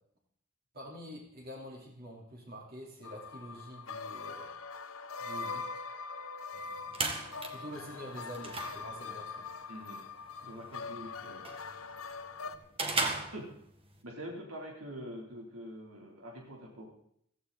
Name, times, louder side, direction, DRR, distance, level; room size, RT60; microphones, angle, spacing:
voice 1, 0.7-4.5 5.2-5.8 7.5-9.5, equal, 50° right, -2 dB, 4.0 m, -46 dB
sound 1, 3.0-12.6, left 4 dB, 70° left, 1.0 m, -42 dB
sound 2, 6.5-14.0, right 3 dB, 25° right, 1.9 m, -39 dB
voice 2, 10.4-11.5 13.3-13.5 14.0-16.9, equal, 85° right, 0 dB, 3.7 m, -45 dB
16.0 x 14.5 x 4.2 m, 0.69 s
head